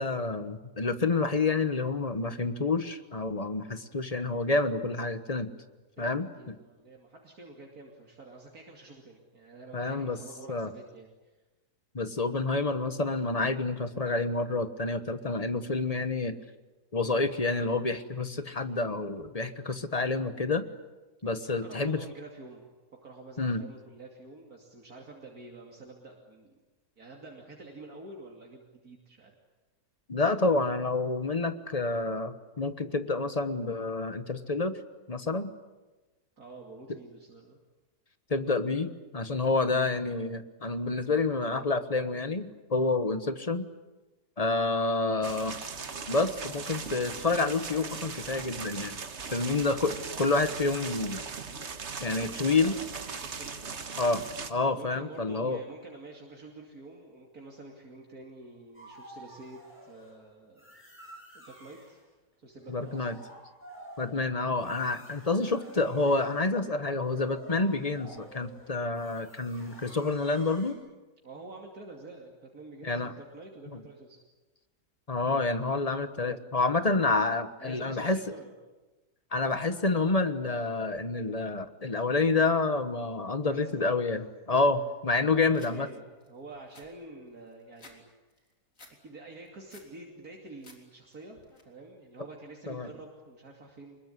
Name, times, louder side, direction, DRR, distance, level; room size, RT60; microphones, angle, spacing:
voice 1, 0.0-5.5 6.0-6.6 9.7-10.2 10.5-10.7 11.9-16.3 16.9-20.6 21.2-22.0 23.4-23.6 30.1-34.8 35.1-35.5 38.3-43.7 44.4-45.6 46.1-49.0 49.3-51.3 52.0-52.7 54.0-54.2 54.5-55.6 62.7-63.2 64.0-70.8 72.8-73.1 73.7-73.8 75.1-78.2 79.3-85.9 92.7-92.9, left 3 dB, 25° left, 11 dB, 1.2 m, -28 dB
voice 2, 6.0-11.1 21.4-22.7 23.0-26.6 27.0-29.3 36.4-37.6 52.4-52.8 53.2-53.5 54.7-60.7 61.3-62.0 62.4-63.2 71.2-74.2 76.8-77.0 77.6-78.5 83.4-83.8 84.5-84.6 85.3-88.0 88.3-88.4 89.0-91.4 91.6-94.0, right 2 dB, 65° right, 0 dB, 3.2 m, -48 dB
sound 1, 45.2-54.5, right 5 dB, 45° right, 1.6 m, -39 dB
sound 2, 58.7-60.2 60.6-62.0 62.5-70.7, right 1 dB, 5° left, 7.9 m, -51 dB
sound 3, 85.5-85.7 86.2-86.3 86.5-88.0 88.3-88.9 89.3-89.9 90.3-90.8 91.1-91.6, left 2 dB, 55° left, 3.9 m, -54 dB
25.0 x 21.5 x 9.8 m, 1.2 s
omnidirectional pair, 1.7 m